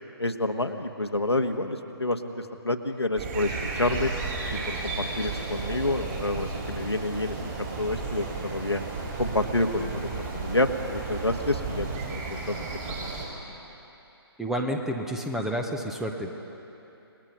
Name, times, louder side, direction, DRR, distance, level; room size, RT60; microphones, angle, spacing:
voice 1, 0.2-4.1 4.5-8.8 9.2-13.1, left 2 dB, 85° left, 5 dB, 1.5 m, -29 dB
sound 1, 3.2-13.2, right 4 dB, 30° right, 5.4 m, -33 dB
voice 2, 14.4-16.4, equal, 5° right, 3 dB, 1.0 m, -30 dB
30.0 x 20.0 x 5.4 m, 3.0 s
figure-of-eight pair, 135°, 13 cm